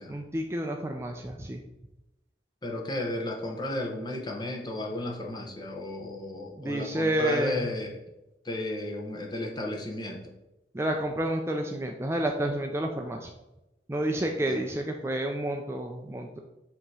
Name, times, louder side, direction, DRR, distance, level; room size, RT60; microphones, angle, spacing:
voice 1, 0.1-1.6 6.6-7.7 10.7-13.3 13.9-16.4, right 1 dB, 15° right, 2 dB, 0.4 m, -30 dB
voice 2, 2.6-8.0 8.4-10.3 14.4-14.6, left 1 dB, 25° left, 0 dB, 0.9 m, -34 dB
7.8 x 3.0 x 4.7 m, 0.96 s
head